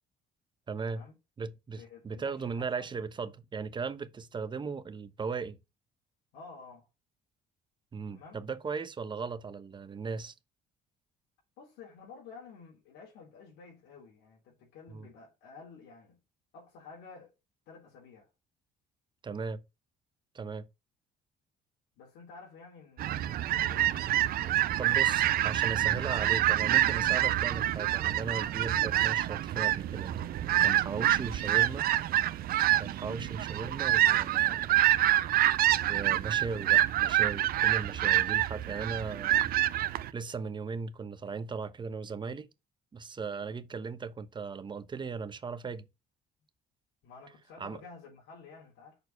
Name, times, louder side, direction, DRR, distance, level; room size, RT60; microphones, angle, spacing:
voice 1, 0.7-1.0 1.4-5.6 7.9-10.3 14.9-15.1 19.2-19.6 20.3-20.7 24.8-30.1 30.6-31.9 32.8-34.7 35.9-39.8 40.1-42.5 42.9-45.9 47.6-47.8, right 5 dB, 30° right, 0.9 m, -37 dB
voice 2, 1.7-2.9 6.3-6.9 8.1-8.4 11.6-16.2 16.5-17.3 17.7-18.3 22.0-25.0 30.9-31.1 43.4-43.6 47.0-49.0, left 5 dB, 90° left, 3.6 m, -52 dB
sound 1, 23.0-40.1, right 13 dB, 65° right, 0.6 m, -27 dB
6.6 x 4.5 x 6.5 m
cardioid pair, 110°, 17 cm